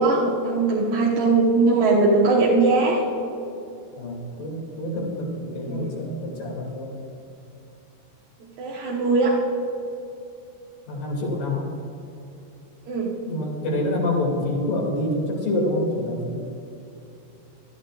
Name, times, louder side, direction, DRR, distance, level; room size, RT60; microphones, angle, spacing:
voice 1, 0.0-3.0 5.7-6.0 8.4-9.4 12.9-13.2, right 3 dB, 65° right, -5 dB, 2.5 m, -20 dB
voice 2, 4.0-6.9 10.9-11.7 13.3-16.4, left 1 dB, 55° left, -1 dB, 3.9 m, -27 dB
21.0 x 14.0 x 2.4 m, 2.8 s
omnidirectional pair, 5.1 m